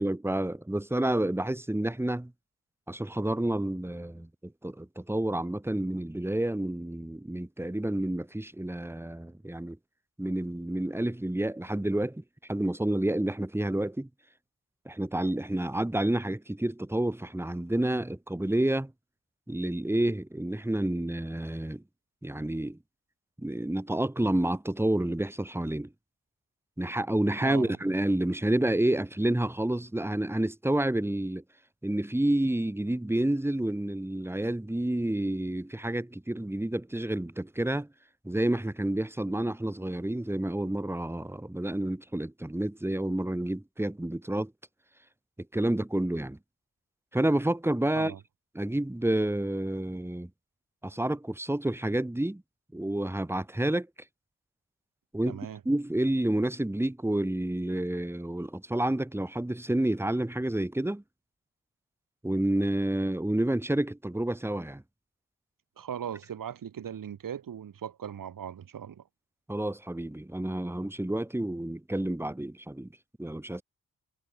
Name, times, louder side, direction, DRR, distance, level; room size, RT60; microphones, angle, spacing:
voice 1, 0.0-2.3 2.9-9.8 10.2-12.2 12.5-14.1 14.9-18.9 19.5-21.8 22.2-22.8 23.4-25.9 26.8-31.4 31.8-37.9 38.2-44.5 45.5-46.4 47.1-48.2 48.6-50.3 50.8-52.4 52.7-53.9 55.1-55.4 55.7-61.0 62.2-64.8 69.5-72.9 73.2-73.6, right 1 dB, 5° right, 1.8 m, -29 dB
voice 2, 27.4-27.8 47.9-48.2 55.3-55.6 65.8-69.0, right 9 dB, 85° right, 6.1 m, -39 dB
wide cardioid pair, 105°, 32 cm